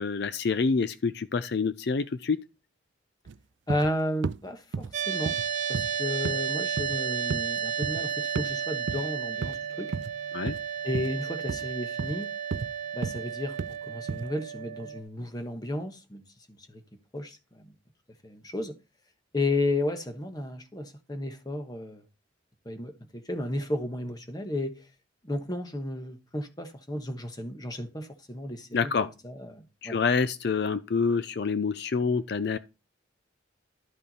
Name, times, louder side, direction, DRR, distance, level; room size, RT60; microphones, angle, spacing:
voice 1, 0.0-2.4 10.3-10.5 28.7-29.1 29.8-32.6, left 5 dB, 60° left, 0.5 m, -27 dB
sound 1, 3.3-3.4 3.7-3.9 4.2-4.4 4.7-4.9 5.3-5.5 5.7-5.9 6.2-6.4 6.8-7.0 7.3-7.5 7.8-8.0 8.4-8.5 8.9-9.0 9.4-9.6 9.9-10.1 10.5-10.6 10.9-11.1 11.5-11.7 12.0-12.1 12.5-12.7 13.0-13.2 13.6-13.7 14.1-14.3, right 5 dB, 75° right, 0.4 m, -33 dB
voice 2, 3.7-5.4 5.7-10.0 10.8-12.3 12.9-16.2 16.7-16.8 17.1-17.7 18.2-18.7 19.3-22.0 22.6-24.8 25.2-30.0, left 1 dB, 20° left, 1.2 m, -33 dB
sound 2, 4.9-15.0, right 8 dB, 40° right, 1.0 m, -32 dB
12.0 x 5.4 x 4.2 m
head